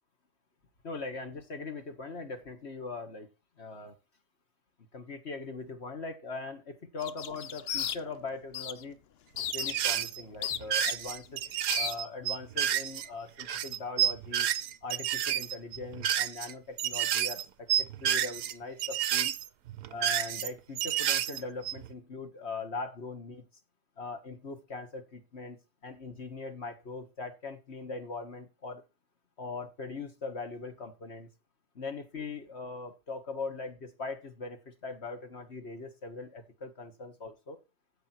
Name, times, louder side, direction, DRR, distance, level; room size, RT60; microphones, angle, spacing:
voice 1, 0.8-3.3 3.6-4.0 4.9-9.0 9.5-11.4 11.7-14.5 14.8-19.4 19.9-23.4 24.0-25.6 25.8-28.8 29.4-31.3 31.8-37.6, left 3 dB, 40° left, 7 dB, 1.8 m, -40 dB
sound 1, 7.0-8.3 8.5-8.8 9.4-10.0 10.4-11.3 11.7-11.9, left 9 dB, 65° left, 0.6 m, -35 dB
sound 2, 9.5-10.2 10.5-13.1 13.4-16.5 16.8-17.4 17.7-18.5 18.8-20.5 20.8-21.9, right 10 dB, 70° right, 1.3 m, -30 dB
13.5 x 7.9 x 4.5 m, 0.28 s
omnidirectional pair, 1.9 m